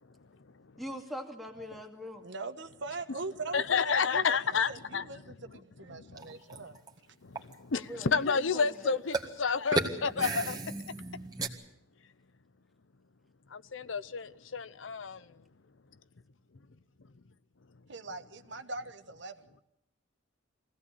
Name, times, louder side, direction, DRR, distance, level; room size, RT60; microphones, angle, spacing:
voice 1, 0.8-2.3 7.7-9.0, left 1 dB, ahead, 2.3 m, -42 dB
voice 2, 2.2-4.4 4.7-6.8 17.9-19.6, right 3 dB, 65° right, 1.3 m, -41 dB
voice 3, 3.5-5.3 5.9-6.6 7.2-10.6 13.5-15.4, left 5 dB, 75° left, 0.8 m, -31 dB
sound 1, 6.2-6.9 7.3-7.5 9.1-9.3 9.7-11.5, right 2 dB, 20° right, 1.9 m, -33 dB
23.5 x 17.0 x 8.7 m
head